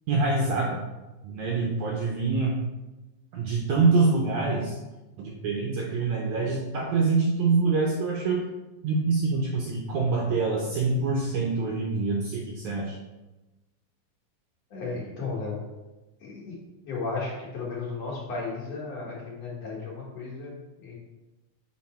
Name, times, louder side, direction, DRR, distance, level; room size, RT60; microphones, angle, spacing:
voice 1, 0.1-0.8 1.2-2.5 3.3-4.8 5.2-8.4 8.8-13.0, right 3 dB, 80° right, -1 dB, 1.7 m, -25 dB
voice 2, 14.7-15.6 16.2-16.6 16.8-20.5 20.8-21.0, left 4 dB, 60° left, -5 dB, 2.0 m, -34 dB
6.3 x 4.1 x 4.3 m, 1.1 s
omnidirectional pair, 4.1 m